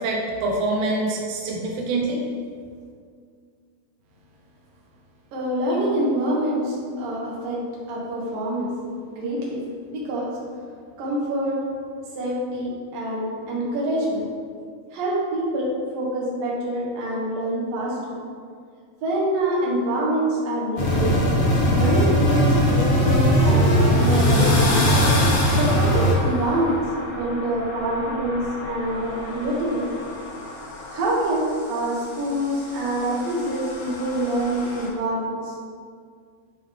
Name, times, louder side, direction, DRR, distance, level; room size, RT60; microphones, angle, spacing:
voice 1, 0.0-2.2, right 2 dB, 85° right, -2 dB, 1.7 m, -25 dB
voice 2, 5.3-7.6 7.9-8.7 9.0-9.6 9.8-10.3 11.0-11.6 12.2-14.3 14.9-18.2 19.0-21.4 21.7-24.7 25.5-26.8 27.1-30.0 30.9-35.6, right 1 dB, 65° right, -5 dB, 2.7 m, -26 dB
sound 1, 20.8-26.1, equal, 65° left, 1.9 m, -19 dB
sound 2, 23.5-34.9, left 2 dB, 85° left, 3.7 m, -31 dB
9.7 x 3.7 x 3.6 m, 2.1 s
omnidirectional pair, 4.8 m